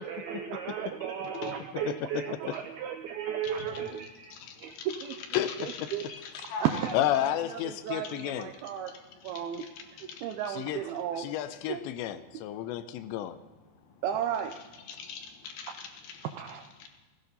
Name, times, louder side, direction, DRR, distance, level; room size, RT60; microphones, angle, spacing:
voice 1, 0.0-4.4 4.6-5.2 5.6-6.1 6.6-9.0 9.2-9.7 10.2-11.3 11.6-11.8 12.3-12.4 14.0-14.5 16.3-16.7, right 9 dB, 85° right, 6 dB, 2.2 m, -34 dB
voice 2, 1.9-2.5 5.3-5.5 5.8-5.9 6.9-8.5 10.5-10.8 11.2-13.4, left 12 dB, 85° left, 11 dB, 2.8 m, -31 dB
voice 3, 3.5-3.9 4.3-4.9 5.5-6.9 8.0-8.1 8.8-10.4 12.3-12.9 13.7-14.0 14.9-16.3 16.8-16.9, left 5 dB, 65° left, 4 dB, 3.1 m, -44 dB
16.0 x 16.0 x 4.0 m, 1.3 s
omnidirectional pair, 5.2 m